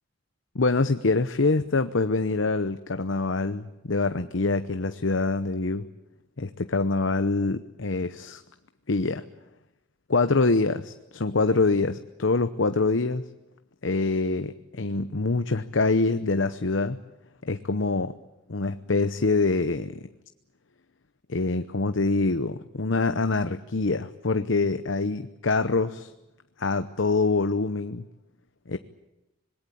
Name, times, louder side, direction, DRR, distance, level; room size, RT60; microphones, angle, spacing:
voice 1, 0.5-5.9 6.4-8.4 8.9-9.2 10.1-13.2 13.8-17.0 17.4-18.1 18.5-20.0 21.3-26.1 26.6-28.0 28.7-28.8, left 3 dB, 80° left, 10 dB, 0.9 m, -25 dB
26.0 x 21.0 x 8.6 m, 0.93 s
head